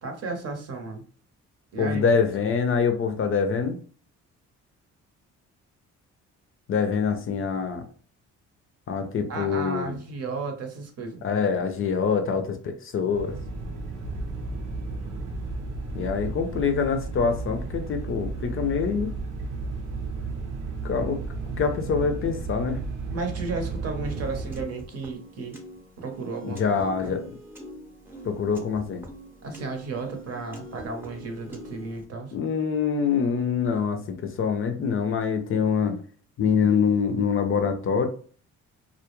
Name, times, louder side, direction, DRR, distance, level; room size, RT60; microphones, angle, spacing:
voice 1, 0.0-1.0 1.7-2.0 9.3-11.2 23.1-25.6 26.0-27.2 29.4-32.3, right 3 dB, 55° right, 4 dB, 0.7 m, -34 dB
voice 2, 1.8-3.8 6.7-7.8 8.9-10.0 11.2-13.4 15.9-19.1 20.8-21.2 21.6-22.8 26.4-27.4 28.2-29.0 32.3-36.0 36.4-38.1, left 6 dB, 45° left, 6 dB, 0.5 m, -25 dB
sound 1, 13.1-24.7, right 3 dB, 90° right, 0.6 m, -33 dB
Piano, 24.0-32.0, equal, 5° right, 0.6 m, -44 dB
2.2 x 2.0 x 2.9 m, 0.43 s
cardioid pair, 90°, 30 cm